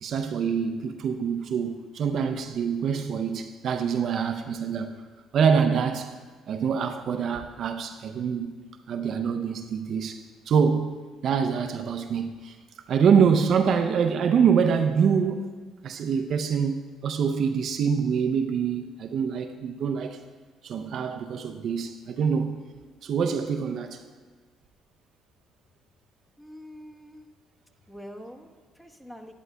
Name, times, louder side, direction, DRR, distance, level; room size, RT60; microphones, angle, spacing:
voice 1, 0.0-4.9 5.3-6.1 6.5-8.6 8.9-10.2 10.5-11.0 11.2-12.6 12.9-15.5 15.8-20.2 20.6-22.6 23.0-24.0, right 6 dB, 60° right, 0.5 m, -25 dB
voice 2, 26.4-27.3 27.9-29.3, equal, 10° left, 1.1 m, -45 dB
11.0 x 10.5 x 2.2 m
supercardioid pair, 75°, 0 cm